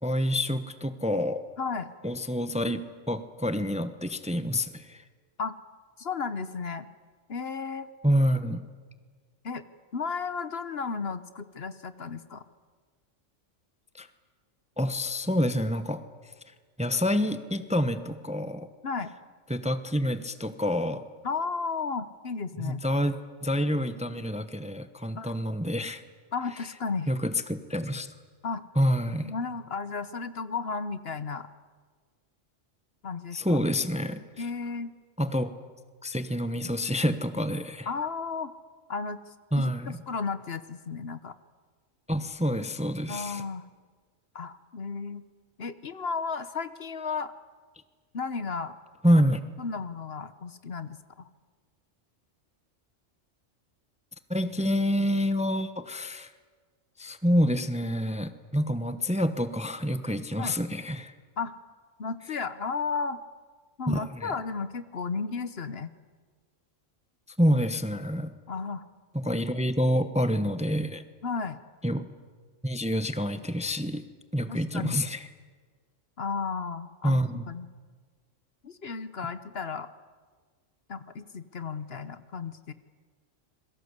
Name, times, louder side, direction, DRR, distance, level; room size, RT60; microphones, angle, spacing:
voice 1, 0.0-1.4 2.0-5.0 8.0-8.6 14.0-14.1 14.8-16.0 16.8-18.7 19.5-21.0 22.6-23.2 23.4-26.0 27.1-28.1 28.8-29.3 33.3-34.5 35.2-35.5 36.0-37.9 39.5-40.0 42.1-43.4 49.0-49.4 54.3-56.3 57.0-61.1 63.9-64.3 67.4-68.3 69.1-71.0 71.8-72.1 72.6-74.0 74.3-75.3 77.0-77.4, equal, 5° right, 10 dB, 0.9 m, -27 dB
voice 2, 1.6-1.9 5.4-5.6 6.0-6.9 7.3-7.9 9.4-9.6 9.9-12.4 18.8-19.1 21.2-22.8 25.1-25.3 26.3-27.1 28.4-28.6 29.2-31.5 33.0-33.6 34.4-34.9 37.9-38.5 38.9-41.3 43.1-43.7 44.3-45.2 45.6-47.3 48.1-48.7 49.6-51.3 60.4-60.6 61.4-61.6 62.0-63.2 63.8-65.9 68.5-68.8 71.2-71.6 74.5-75.0 76.2-77.2 77.5-77.7 78.6-79.9 80.9-82.7, left 5 dB, 55° left, 12 dB, 1.2 m, -34 dB
27.5 x 22.5 x 8.2 m, 1.5 s
omnidirectional pair, 1.3 m